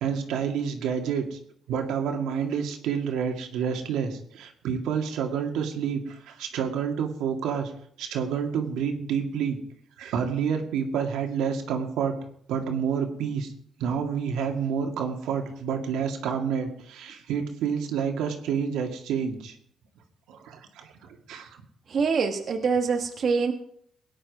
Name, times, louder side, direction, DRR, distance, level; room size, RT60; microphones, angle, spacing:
voice 1, 0.0-1.4 1.7-7.7 8.0-9.6 10.0-12.1 12.5-13.5 13.8-19.6 20.3-21.6, right 7 dB, 90° right, 3 dB, 2.1 m, -29 dB
voice 2, 21.9-23.5, right 5 dB, 55° right, 4 dB, 1.3 m, -24 dB
18.0 x 10.0 x 4.8 m, 0.66 s
cardioid pair, 90°, 0 cm